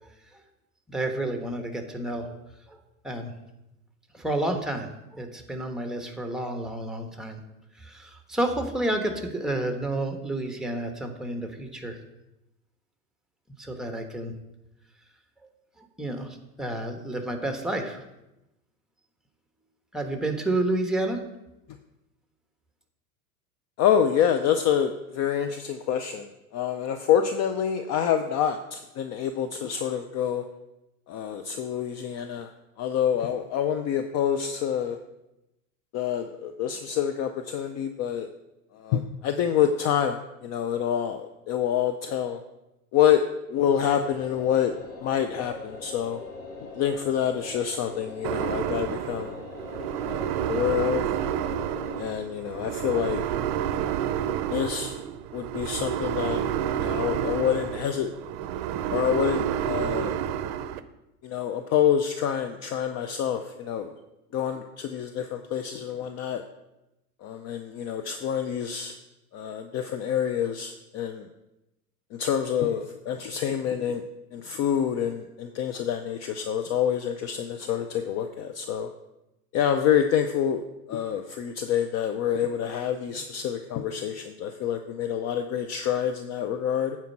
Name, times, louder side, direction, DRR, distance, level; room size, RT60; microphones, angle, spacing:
voice 1, 0.9-2.4 2.7-2.8 3.0-3.3 4.1-7.4 7.8-12.0 13.6-14.3 15.4-15.5 15.8-18.0 19.9-21.2, right 1 dB, ahead, 4 dB, 1.3 m, -30 dB
voice 2, 23.8-30.4 31.1-32.5 32.8-35.0 35.9-38.3 38.7-42.4 42.9-43.2 43.5-44.7 45.0-46.2 46.7-49.4 50.1-51.1 52.0-53.2 54.5-55.0 55.3-56.4 56.8-58.1 58.9-60.2 61.2-64.0 64.3-66.4 67.2-69.0 69.3-71.3 72.1-74.0 74.3-78.9 79.5-80.6 80.9-87.0, left 9 dB, 35° left, 7 dB, 0.6 m, -27 dB
sound 1, 43.5-52.0, left 3 dB, 80° left, 2.2 m, -41 dB
sound 2, 48.2-60.8, right 10 dB, 45° right, 0.7 m, -29 dB
9.3 x 4.5 x 7.3 m, 0.93 s
hypercardioid pair, 90°, 47 cm